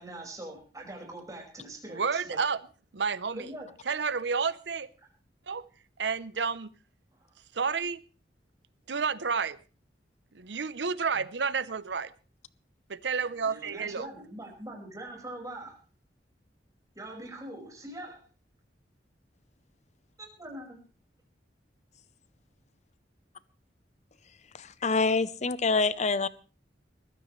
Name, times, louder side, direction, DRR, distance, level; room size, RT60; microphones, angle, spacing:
voice 1, 0.0-2.4 3.3-3.7 13.4-15.8 17.0-18.2 20.2-20.8, right 1 dB, 20° right, 5.2 m, -42 dB
voice 2, 1.9-2.6 2.9-3.5 3.8-4.9 5.5-5.7 6.0-6.7 7.5-8.0 8.9-9.6 10.3-12.1 12.9-14.1, right 5 dB, 75° right, 0.7 m, -30 dB
voice 3, 24.5-26.3, left 4 dB, 40° left, 0.7 m, -26 dB
21.0 x 15.0 x 3.2 m
head